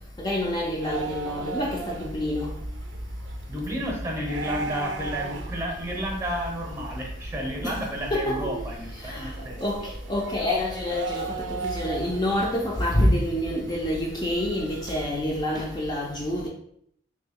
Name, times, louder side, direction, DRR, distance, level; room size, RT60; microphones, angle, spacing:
voice 1, 0.2-2.5 7.6-8.5 8.9-9.3 9.6-16.5, left 1 dB, 20° left, 0.4 m, -27 dB
sound 1, 0.8-15.1, right 3 dB, 80° right, 0.5 m, -37 dB
voice 2, 3.5-9.6, equal, 15° right, 0.7 m, -31 dB
3.1 x 2.9 x 3.5 m
head